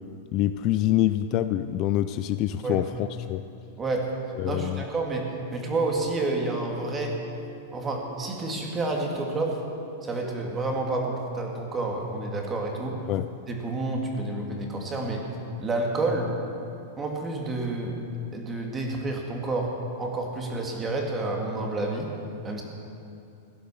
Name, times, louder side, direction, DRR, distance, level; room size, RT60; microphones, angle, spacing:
voice 1, 0.3-3.4 4.4-4.8 13.1-13.3, left 13 dB, 40° left, 12 dB, 0.4 m, -25 dB
voice 2, 3.8-4.1 4.4-7.2 7.7-9.6 10.0-13.1 13.5-15.2 15.6-16.3 17.0-18.0 18.3-22.1 22.4-22.6, right 2 dB, 15° right, 1 dB, 2.2 m, -29 dB
Piano, 4.9-12.0, right 4 dB, ahead, 1.2 m, -46 dB
16.0 x 10.5 x 7.0 m, 2.7 s
supercardioid pair, 150°, 0 cm